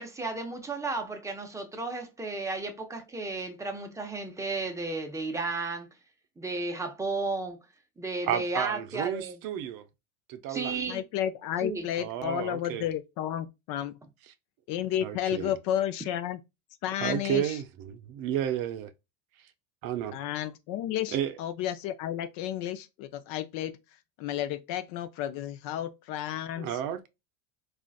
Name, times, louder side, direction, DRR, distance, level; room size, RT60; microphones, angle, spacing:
voice 1, 0.0-5.9 6.4-7.7 8.0-9.4 10.5-11.0 11.6-11.9, right 3 dB, 5° right, 0.5 m, -33 dB
voice 2, 8.3-9.9 10.3-10.9 12.0-12.9 15.0-15.5 17.0-18.9 19.8-20.2 21.1-21.3 26.6-27.1, right 10 dB, 50° right, 0.6 m, -32 dB
voice 3, 10.9-14.0 14.7-16.4 16.8-17.6 20.1-23.8 24.2-26.7, left 11 dB, 50° left, 0.5 m, -32 dB
3.7 x 2.4 x 2.3 m
supercardioid pair, 125°, 44 cm